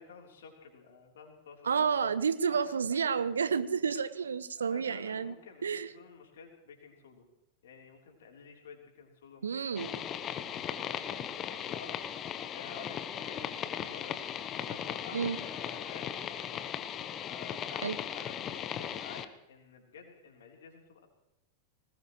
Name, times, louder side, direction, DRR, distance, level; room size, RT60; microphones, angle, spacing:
voice 1, 0.0-2.0 2.5-3.1 4.6-7.2 7.6-10.8 11.1-12.1 12.5-14.2 14.5-16.6 17.2-21.1, left 5 dB, 60° left, 2 dB, 3.5 m, -52 dB
voice 2, 1.6-5.3 5.6-5.9 9.4-9.9 15.1-15.4 17.8-18.0, right 6 dB, 70° right, 15 dB, 0.8 m, -30 dB
sound 1, 9.8-19.3, left 9 dB, 30° left, 0.9 m, -38 dB
20.0 x 19.5 x 3.1 m, 0.89 s
figure-of-eight pair, 90°, 0 cm